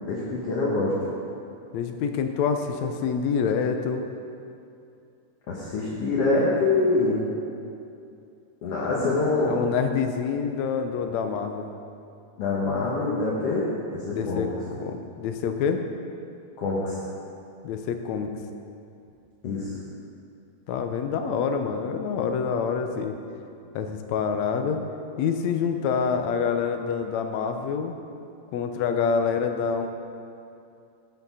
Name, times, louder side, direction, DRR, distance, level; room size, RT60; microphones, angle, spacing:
voice 1, 0.0-0.9 5.5-7.2 8.6-9.5 12.4-13.6 13.9-14.5 16.6-16.9 19.4-19.7, left 3 dB, 60° left, -5 dB, 2.2 m, -25 dB
voice 2, 1.7-4.0 9.0-11.7 14.1-15.8 17.6-18.3 20.7-23.2 23.7-24.8 25.2-27.9 28.5-29.9, left 6 dB, 75° left, 6 dB, 2.0 m, -27 dB
14.0 x 6.8 x 5.6 m, 2.6 s
omnidirectional pair, 3.3 m